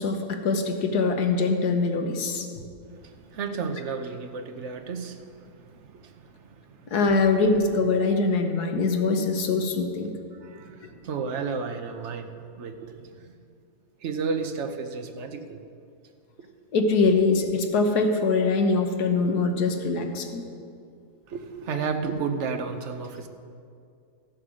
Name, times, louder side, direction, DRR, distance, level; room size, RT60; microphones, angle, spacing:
voice 1, 0.0-2.5 6.9-10.1 16.7-20.4, left 3 dB, 80° left, 5 dB, 1.6 m, -23 dB
voice 2, 2.9-6.9 10.3-13.3 14.0-15.6 21.3-23.3, right 5 dB, 55° right, 6 dB, 1.1 m, -33 dB
14.0 x 7.4 x 6.3 m, 2.4 s
omnidirectional pair, 1.7 m